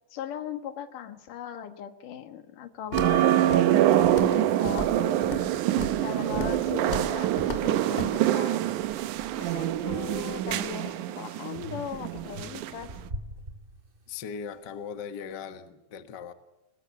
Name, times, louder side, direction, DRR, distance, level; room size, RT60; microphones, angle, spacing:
voice 1, 0.1-5.4 6.0-8.7 9.3-12.9, left 9 dB, 85° left, 9 dB, 3.1 m, -39 dB
Walk footsteps, 2.9-3.2 3.5-4.4 4.6-5.5 5.8-6.0 6.3-6.6 6.9-7.1 7.4-7.6 8.0-8.1, left 1 dB, 20° left, 2.1 m, -34 dB
sound 1, 2.9-12.8 13.1-13.2, right 13 dB, 75° right, 2.3 m, -25 dB
sound 2, 8.8-11.0 11.6-14.3, right 1 dB, 60° right, 0.5 m, -45 dB
voice 2, 14.1-16.3, left 6 dB, 50° left, 10 dB, 1.4 m, -39 dB
21.5 x 20.0 x 8.4 m, 0.99 s
omnidirectional pair, 3.6 m